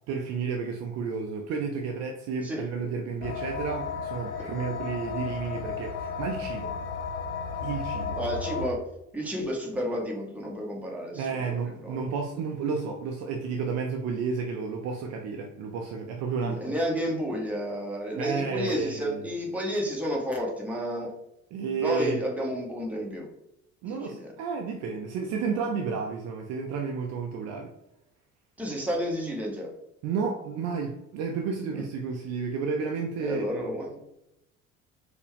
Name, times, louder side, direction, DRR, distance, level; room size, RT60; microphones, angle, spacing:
voice 1, 0.1-6.7 7.6-8.2 11.1-16.8 18.1-19.3 21.5-22.2 23.8-27.7 30.0-33.6, right 5 dB, 40° right, 2 dB, 0.5 m, -31 dB
sound 1, 3.2-8.7, left 5 dB, 65° left, 0.5 m, -34 dB
voice 2, 8.2-8.8 9.1-12.0 16.4-21.1 21.8-23.3 23.9-24.3 28.6-29.7 31.7-31.8 33.2-34.0, equal, 5° right, -2 dB, 0.9 m, -31 dB
4.4 x 2.2 x 3.2 m, 0.85 s
figure-of-eight pair, 55°, 41 cm